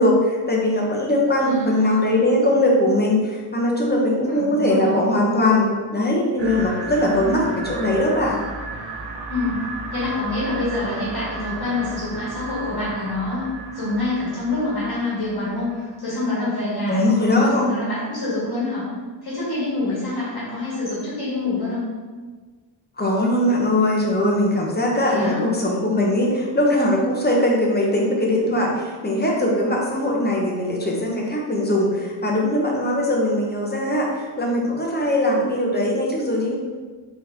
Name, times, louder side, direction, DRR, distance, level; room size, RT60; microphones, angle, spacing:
voice 1, 0.0-8.4 16.9-17.7 23.0-36.6, left 1 dB, 20° left, -2 dB, 0.7 m, -20 dB
voice 2, 1.4-2.2 4.3-5.0 9.3-9.6 9.9-18.8 19.2-21.8 25.0-25.5, left 2 dB, 55° left, -9 dB, 1.5 m, -26 dB
sound 1, 6.4-15.9, right 3 dB, 70° right, 0.7 m, -35 dB
4.1 x 3.4 x 2.7 m, 1.4 s
wide cardioid pair, 125°, 45 cm